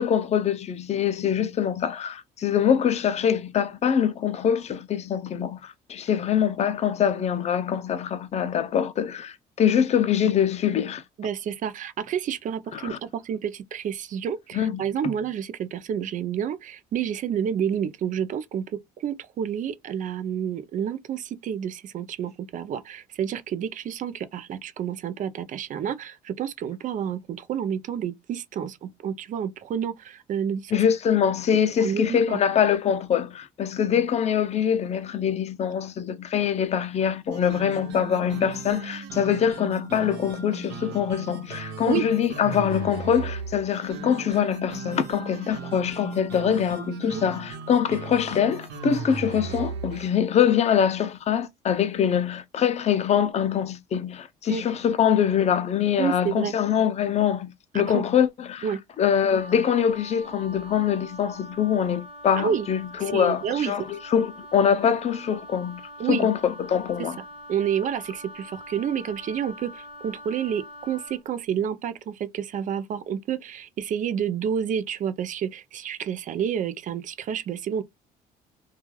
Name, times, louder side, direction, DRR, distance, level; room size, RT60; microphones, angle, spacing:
voice 1, 0.0-11.0 12.7-13.0 14.5-14.8 30.7-58.7 59.0-65.8 66.1-67.2, left 8 dB, 40° left, 0.5 m, -24 dB
voice 2, 11.2-30.8 31.8-32.4 41.9-42.1 47.1-47.2 54.5-54.6 56.0-56.5 57.7-58.0 58.6-58.8 62.3-62.7 63.0-63.7 66.0-66.3 67.0-67.1 67.5-77.8, right 8 dB, 50° right, 0.5 m, -29 dB
sound 1, 37.3-50.1, right 5 dB, 85° right, 0.9 m, -37 dB
Wind instrument woodwind instrument, 59.2-71.2, left 1 dB, 30° right, 1.2 m, -44 dB
3.0 x 2.3 x 2.3 m
cardioid pair, 110°, 17 cm